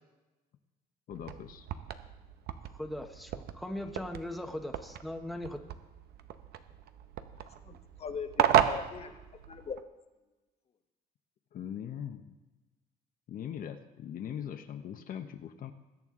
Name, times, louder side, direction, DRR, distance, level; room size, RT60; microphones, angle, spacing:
voice 1, 1.1-1.7 11.5-12.3 13.3-15.7, left 9 dB, 55° left, 7 dB, 0.9 m, -40 dB
sound 1, 1.1-9.8, right 10 dB, 70° right, 0.8 m, -34 dB
voice 2, 2.7-5.6, left 1 dB, ahead, 4 dB, 1.0 m, -39 dB
voice 3, 7.7-9.8, left 6 dB, 35° left, 7 dB, 1.2 m, -41 dB
20.5 x 9.0 x 3.7 m, 1.1 s
cardioid pair, 110°, 17 cm